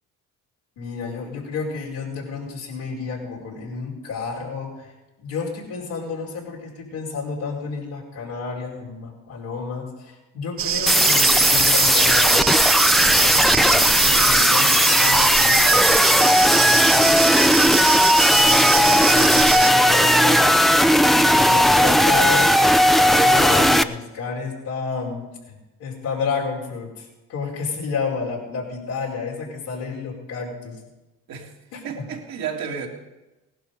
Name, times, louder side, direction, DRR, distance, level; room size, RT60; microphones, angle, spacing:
voice 1, 0.8-4.9 5.2-20.8 21.1-30.8 31.7-31.8, left 4 dB, 85° left, -3 dB, 4.6 m, -31 dB
sound 1, 10.6-19.7, right 10 dB, 40° right, 0.5 m, -24 dB
sound 2, 10.9-23.8, equal, ahead, 0.7 m, -16 dB
voice 2, 31.8-32.9, right 7 dB, 75° right, 0 dB, 2.6 m, -31 dB
17.5 x 11.5 x 5.3 m, 1.1 s
supercardioid pair, 55°, 36 cm